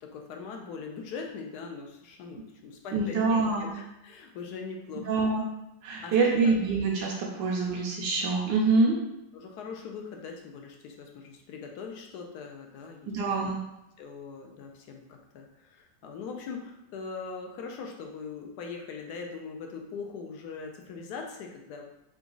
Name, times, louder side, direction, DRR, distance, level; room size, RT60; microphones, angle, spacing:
voice 1, 0.0-5.2 6.0-6.6 7.3-7.5 9.3-13.1 13.4-13.5 14.0-21.8, left 5 dB, 70° left, 2 dB, 1.1 m, -41 dB
voice 2, 2.9-3.7 5.1-5.4 5.8-9.0 13.1-13.6, right 3 dB, 80° right, -2 dB, 1.3 m, -25 dB
3.9 x 2.4 x 3.8 m, 0.88 s
omnidirectional pair, 1.9 m